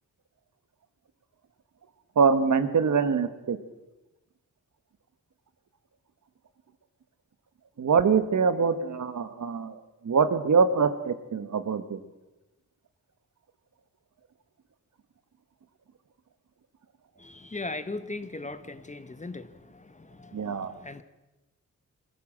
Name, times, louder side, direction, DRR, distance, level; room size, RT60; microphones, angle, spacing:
voice 1, 2.1-3.6 7.8-12.0 20.3-20.7, right 5 dB, 65° right, 10 dB, 1.6 m, -24 dB
voice 2, 17.5-19.4 20.8-21.0, left 2 dB, 25° left, 12 dB, 1.1 m, -36 dB
23.0 x 15.5 x 7.5 m, 1.0 s
wide cardioid pair, 110°, 31 cm